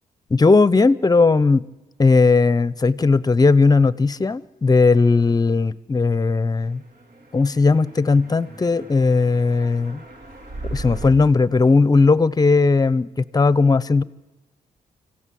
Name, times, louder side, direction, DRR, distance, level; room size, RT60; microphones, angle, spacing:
voice 1, 0.3-1.6 2.0-6.8 7.3-10.0 10.7-14.0, left 4 dB, 25° left, 0.8 m, -17 dB
sound 1, 6.7-11.1, right 2 dB, 65° right, 4.1 m, -38 dB
26.0 x 15.5 x 7.7 m
cardioid pair, 85°, 15 cm